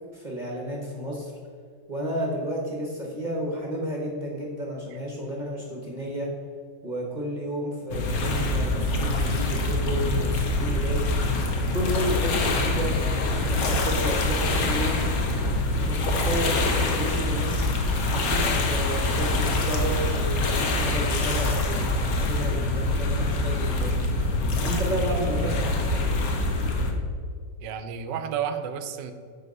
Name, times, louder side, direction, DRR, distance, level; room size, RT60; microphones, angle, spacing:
voice 1, 0.1-1.3 1.9-6.3 6.8-11.1 11.7-15.0 15.8-17.7 18.1-23.9 24.6-26.0, equal, 35° right, -2 dB, 0.7 m, -32 dB
sound 1, 7.9-26.9, left 2 dB, 60° left, 1.0 m, -25 dB
voice 2, 25.1-25.7 27.6-29.1, right 7 dB, 70° right, 9 dB, 1.1 m, -32 dB
9.0 x 4.2 x 5.2 m, 2.2 s
omnidirectional pair, 2.3 m